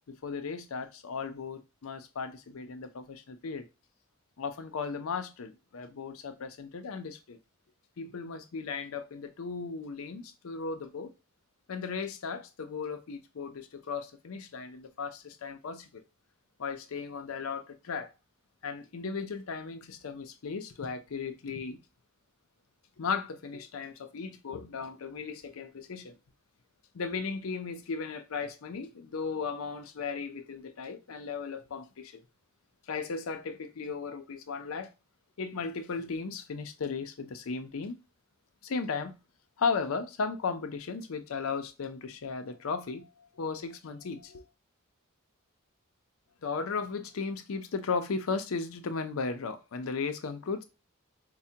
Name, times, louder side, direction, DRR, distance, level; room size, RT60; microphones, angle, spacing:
voice 1, 0.1-3.6 4.4-7.4 8.0-11.1 11.7-16.0 16.6-18.1 18.6-21.8 23.0-26.1 26.9-32.2 32.9-34.9 35.4-38.0 38.6-39.2 39.6-43.1 43.4-44.4 46.4-50.6, left 5 dB, 75° left, 0.5 m, -36 dB
4.6 x 2.1 x 2.7 m
head